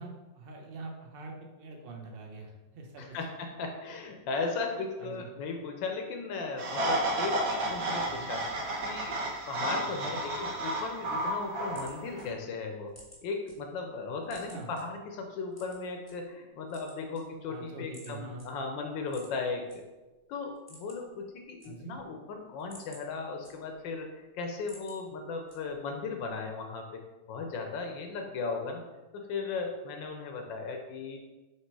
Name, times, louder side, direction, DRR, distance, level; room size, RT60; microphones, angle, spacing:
voice 1, 0.0-3.0 5.0-5.3 8.0-8.3 10.0-10.2 14.5-14.7 17.5-18.4 21.6-22.0, right 3 dB, 40° right, 1 dB, 0.9 m, -44 dB
voice 2, 3.0-8.5 8.8-9.2 9.5-12.9 13.2-19.7 20.3-26.9 27.3-28.8 29.1-31.2, left 4 dB, 85° left, 3 dB, 1.5 m, -36 dB
sound 1, 6.6-12.3, right 1 dB, 85° right, 1.9 m, -32 dB
sound 2, 11.6-13.5 13.9-14.8 15.5-16.1 16.6-17.6 17.9-18.1 18.4-18.5 19.0-19.8 20.1-20.2 20.5-21.1 21.4-22.1 22.5-23.9 24.3-25.0 25.5-25.9, equal, 10° left, 1.8 m, -53 dB
7.9 x 2.9 x 4.6 m, 1.1 s
omnidirectional pair, 2.0 m